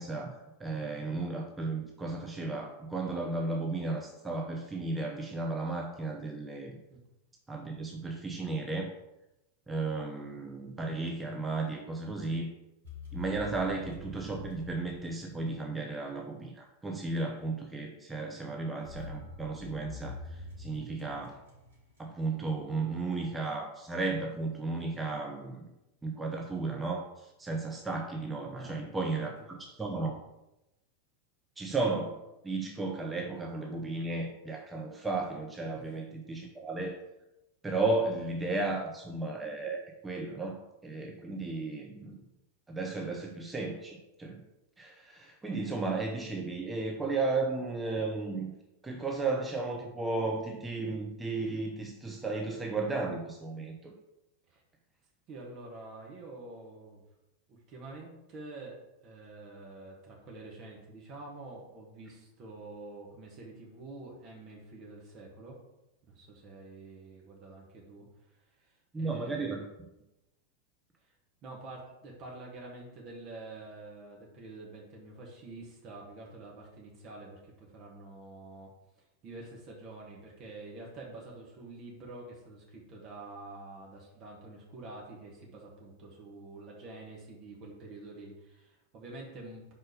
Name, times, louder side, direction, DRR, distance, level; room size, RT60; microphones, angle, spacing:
voice 1, 0.0-6.8 7.5-8.9 9.7-12.5 13.1-21.4 22.0-25.7 26.0-30.2 31.6-37.0 37.6-40.6 40.8-42.2 42.7-44.4 44.8-48.5 48.8-53.9 68.9-69.7, right 3 dB, 10° right, 0 dB, 0.8 m, -34 dB
sound 1, 12.8-15.8 18.8-22.3, left 3 dB, 70° right, 2.3 m, -45 dB
voice 2, 28.5-29.2 35.7-35.8 54.5-54.6 55.3-57.0 57.5-65.6 66.1-68.1 68.6-69.6 71.4-78.7 79.2-89.7, right 2 dB, 35° right, -2 dB, 1.6 m, -47 dB
5.3 x 4.1 x 5.2 m, 0.92 s
figure-of-eight pair, 90°, 0 cm